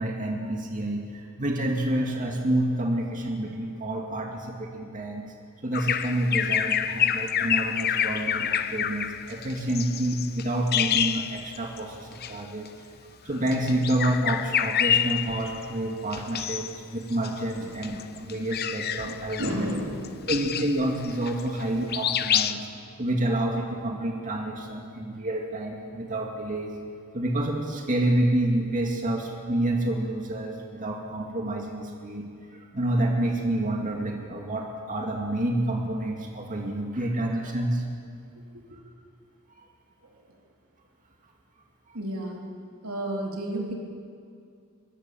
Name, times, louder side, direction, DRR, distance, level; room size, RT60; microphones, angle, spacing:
voice 1, 0.0-5.3 5.6-12.7 13.2-19.7 20.3-22.7 23.0-26.8 27.1-37.8 39.6-39.7, right 1 dB, 40° right, 1 dB, 2.4 m, -28 dB
Bird vocalization bird call bird song, 5.7-11.8 12.1-12.3 13.4-15.6 16.1-16.8 17.1-21.6 21.9-22.5, left 9 dB, 50° left, 0.8 m, -27 dB
voice 2, 17.6-17.9 19.4-20.3 38.5-38.6 41.9-42.5 42.8-43.7, right 1 dB, 85° right, 0 dB, 4.0 m, -32 dB
24.0 x 23.5 x 7.2 m, 2.4 s
head